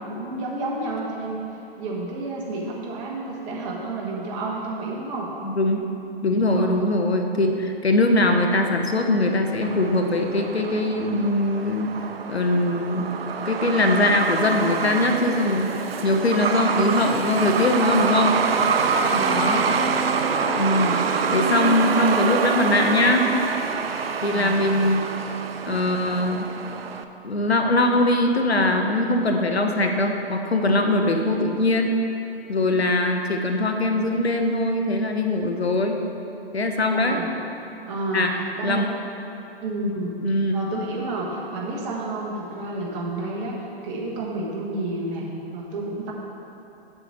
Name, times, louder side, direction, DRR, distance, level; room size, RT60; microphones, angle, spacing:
voice 1, 0.1-1.4 1.8-5.3 6.5-6.7 19.0-19.5 24.2-24.7 36.9-37.3 37.9-38.8 39.6-40.2 40.5-45.3 45.5-46.1, right 2 dB, 30° right, -3 dB, 1.3 m, -30 dB
voice 2, 5.4-5.9 6.2-11.9 12.3-13.1 13.4-15.8 16.0-18.3 19.3-19.7 20.6-21.0 21.3-23.3 24.2-25.1 25.7-26.5 27.2-31.9 32.5-36.0 36.5-37.2 38.1-38.3 38.6-38.9 40.2-40.5, left 2 dB, 90° left, 4 dB, 0.9 m, -21 dB
Truck, 9.6-27.0, right 5 dB, 70° right, 0.6 m, -26 dB
7.8 x 7.0 x 4.2 m, 2.9 s
figure-of-eight pair, 125°, 31 cm